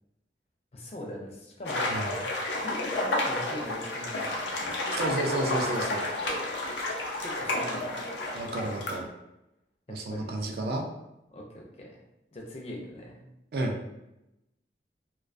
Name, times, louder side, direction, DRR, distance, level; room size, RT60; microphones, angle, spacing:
voice 1, 0.7-2.1 2.6-4.8 7.2-8.0 9.9-10.5 11.3-12.0 12.3-13.3, equal, 35° left, -1 dB, 0.4 m, -41 dB
sound 1, 1.7-9.0, left 2 dB, 90° left, 0.5 m, -31 dB
voice 2, 4.9-6.1 8.3-9.1 9.9-10.8 13.5-13.8, right 2 dB, 60° right, 2 dB, 0.3 m, -31 dB
2.3 x 2.2 x 2.4 m, 0.90 s
head